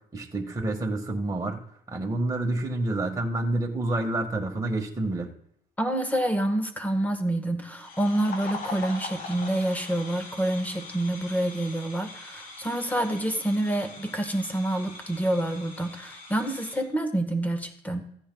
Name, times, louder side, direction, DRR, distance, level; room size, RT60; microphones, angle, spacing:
voice 1, 0.1-1.6 1.9-5.3, right 2 dB, 20° right, 1 dB, 1.7 m, -28 dB
voice 2, 5.8-18.0, right 1 dB, 10° left, 7 dB, 1.4 m, -27 dB
sound 1, 7.8-16.9, left 3 dB, 60° left, 4.1 m, -42 dB
15.5 x 9.9 x 2.3 m, 0.68 s
cardioid pair, 110°, 17 cm